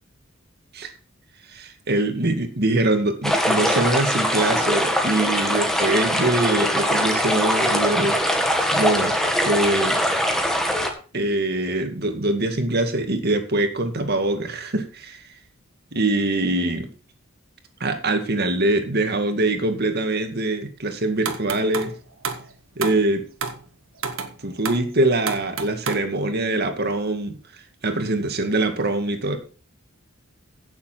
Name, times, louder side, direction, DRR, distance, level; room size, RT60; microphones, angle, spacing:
voice 1, 1.6-10.0 11.1-15.3 15.9-16.9 17.8-21.9 22.8-23.3 24.4-29.4, right 2 dB, 50° right, 6 dB, 2.1 m, -23 dB
sound 1, 3.2-10.9, equal, ahead, 1.9 m, -22 dB
sound 2, 21.3-22.0 22.2-22.5 22.8-23.0 23.4-23.6 24.0-24.3 24.7-24.9 25.3-26.0, right 5 dB, 75° right, 1.8 m, -29 dB
16.0 x 7.0 x 4.5 m, 0.37 s
head